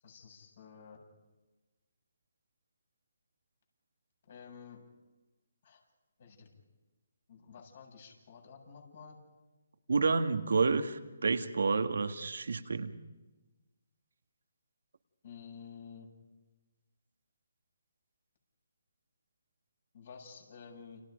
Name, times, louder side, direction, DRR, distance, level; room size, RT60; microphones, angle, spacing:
voice 1, 0.0-1.0 4.3-4.8 5.6-5.8 6.2-6.5 7.3-9.2 15.2-16.1 19.9-21.0, left 6 dB, 55° left, 1 dB, 7.9 m, -51 dB
voice 2, 9.9-13.0, right 4 dB, 70° right, 8 dB, 1.9 m, -29 dB
30.0 x 29.5 x 5.3 m, 1.2 s
figure-of-eight pair, 150°, 0 cm